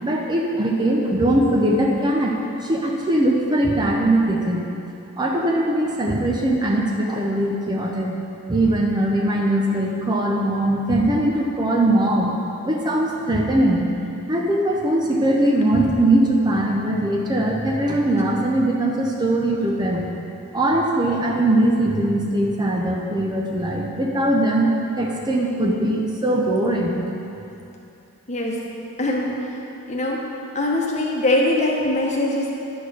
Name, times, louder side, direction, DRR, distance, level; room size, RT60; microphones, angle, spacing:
voice 1, 0.0-2.3 2.6-4.7 5.2-8.1 8.5-12.4 12.6-13.8 14.3-20.1 20.5-27.0, right 1 dB, 20° right, -1 dB, 0.6 m, -21 dB
voice 2, 28.3-28.6 29.0-29.6 29.9-30.2 30.5-32.5, left 1 dB, 30° left, -2 dB, 1.0 m, -22 dB
9.8 x 4.4 x 6.2 m, 2.8 s
head